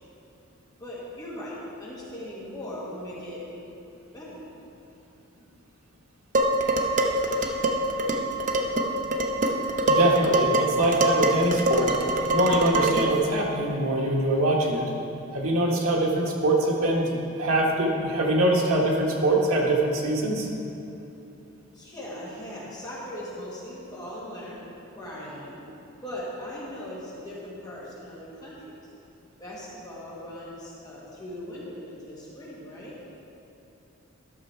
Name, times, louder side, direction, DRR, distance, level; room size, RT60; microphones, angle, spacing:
voice 1, 0.8-3.4 4.1-4.4 21.7-24.6 24.9-25.6 26.0-28.6 29.4-32.9, left 1 dB, 15° left, -7 dB, 1.7 m, -39 dB
Dishes pots and pans, 6.3-13.2, right 1 dB, 35° right, 0.6 m, -24 dB
voice 2, 9.9-11.9 12.3-14.8 15.3-20.5, right 1 dB, 85° right, -2 dB, 1.5 m, -23 dB
12.0 x 6.5 x 4.5 m, 2.9 s
head